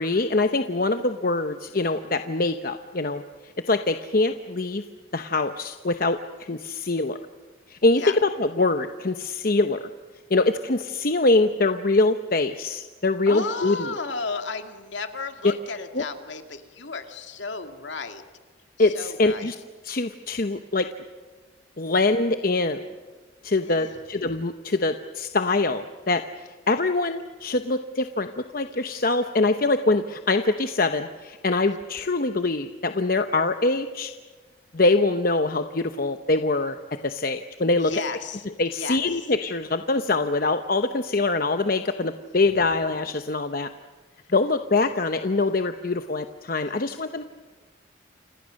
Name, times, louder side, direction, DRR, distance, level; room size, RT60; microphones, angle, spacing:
voice 1, 0.0-3.2 3.7-4.8 5.1-7.2 7.7-9.8 10.3-13.9 15.9-16.0 18.8-19.6 19.8-20.9 21.8-22.8 23.4-34.1 34.7-36.8 37.0-37.9 38.6-43.7 44.3-47.2, left 3 dB, 45° left, 8 dB, 0.9 m, -24 dB
voice 2, 13.3-18.2 18.8-19.5 23.6-24.0 37.8-38.5 38.7-39.2, left 4 dB, 70° left, 6 dB, 2.3 m, -34 dB
29.5 x 26.5 x 6.5 m, 1.4 s
head